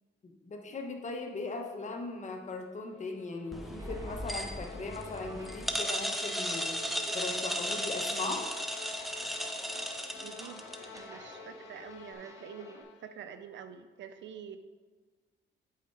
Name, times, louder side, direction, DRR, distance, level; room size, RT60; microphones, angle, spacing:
voice 1, 0.2-6.8 7.1-8.4, left 3 dB, 35° left, 3 dB, 1.1 m, -39 dB
sound 1, 2.7-13.3, left 8 dB, 75° left, 0.5 m, -51 dB
sound 2, 3.5-11.0, equal, ahead, 0.6 m, -35 dB
Walk footsteps, 3.8-12.8, right 1 dB, 15° right, 1.0 m, -51 dB
voice 2, 10.2-10.6 10.9-14.6, right 8 dB, 65° right, 10 dB, 0.6 m, -46 dB
8.3 x 4.4 x 4.6 m, 1.4 s
cardioid pair, 90°, 20 cm